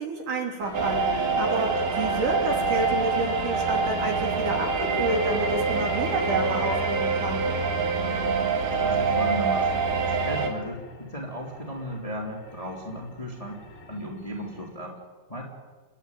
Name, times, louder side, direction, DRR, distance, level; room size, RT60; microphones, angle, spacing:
voice 1, 0.0-7.4, right 2 dB, 55° right, 1 dB, 4.5 m, -29 dB
sound 1, 0.6-14.7, left 3 dB, 35° left, 3.6 m, -45 dB
sound 2, 0.7-10.5, right 4 dB, 75° right, 3.9 m, -25 dB
voice 2, 8.6-15.0 15.3-15.4, equal, 10° left, -1 dB, 2.7 m, -36 dB
28.5 x 11.5 x 9.2 m, 1.4 s
omnidirectional pair, 4.5 m